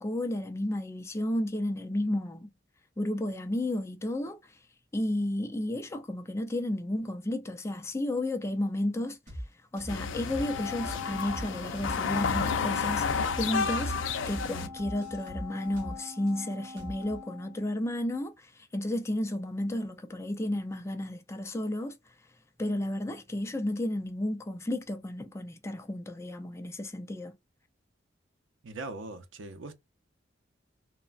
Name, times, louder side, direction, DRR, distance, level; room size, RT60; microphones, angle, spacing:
voice 1, 0.0-2.5 3.0-4.4 4.9-9.2 9.7-13.9 14.3-22.0 22.6-27.3, left 1 dB, 15° left, 0.3 m, -32 dB
sound 1, 9.3-9.5 9.8-10.0 10.3-10.5 10.8-12.5 12.8-12.9 13.3-13.5 13.8-14.0 14.3-14.5 14.8-16.3 16.8-17.2, equal, 40° right, 1.1 m, -41 dB
sound 2, 9.9-14.7, left 5 dB, 80° left, 0.4 m, -31 dB
Wind instrument woodwind instrument, 10.3-18.0, left 5 dB, 20° right, 1.0 m, -43 dB
voice 2, 28.6-29.7, right 2 dB, 80° right, 0.6 m, -40 dB
3.2 x 2.1 x 2.4 m
head